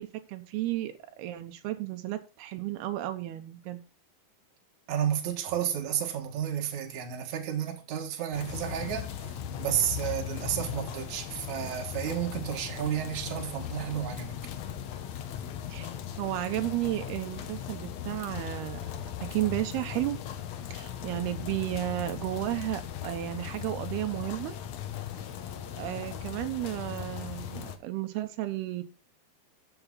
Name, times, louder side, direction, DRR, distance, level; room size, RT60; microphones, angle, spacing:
voice 1, 0.0-3.8 15.7-15.9 16.2-18.8 19.2-20.2 20.7-24.6 25.8-28.8, right 15 dB, 85° right, 2.8 m, -33 dB
voice 2, 4.9-9.1 9.6-14.3, right 10 dB, 55° right, 2.7 m, -31 dB
sound 1, 8.3-27.8, left 9 dB, 75° left, 1.6 m, -38 dB
13.0 x 7.0 x 4.0 m
omnidirectional pair, 4.5 m